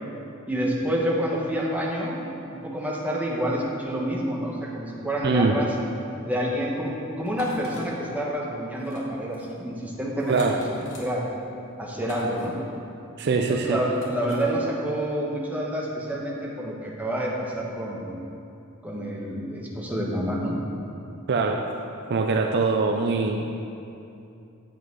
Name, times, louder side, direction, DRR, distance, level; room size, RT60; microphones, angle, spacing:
voice 1, 0.5-2.2 2.5-5.7 6.2-10.6 11.0-11.3 11.8-12.6 13.6-18.2 18.8-20.6, equal, 5° right, -4 dB, 1.3 m, -28 dB
voice 2, 5.2-5.6 10.3-10.6 13.2-13.8 21.3-21.7 22.1-23.5, right 4 dB, 50° right, 3 dB, 0.5 m, -23 dB
sound 1, 7.3-7.8 8.8-9.0 9.3-9.5 10.2-11.1 12.0-12.5 13.9-14.5, left 2 dB, 70° left, 2.1 m, -42 dB
8.4 x 8.1 x 4.7 m, 2.7 s
head